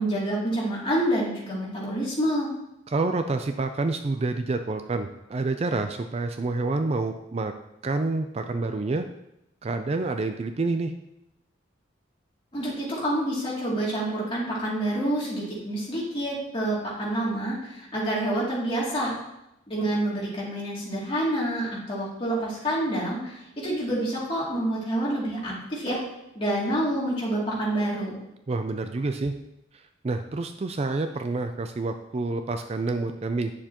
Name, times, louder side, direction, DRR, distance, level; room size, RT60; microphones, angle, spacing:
voice 1, 0.0-2.5 12.5-19.1 19.7-26.0 26.3-28.2, right 1 dB, 30° left, -6 dB, 2.6 m, -27 dB
voice 2, 2.9-7.5 7.8-9.1 9.6-10.9 28.5-29.3 29.7-33.5, right 3 dB, 35° right, 7 dB, 0.4 m, -28 dB
9.7 x 6.8 x 2.9 m, 0.85 s
head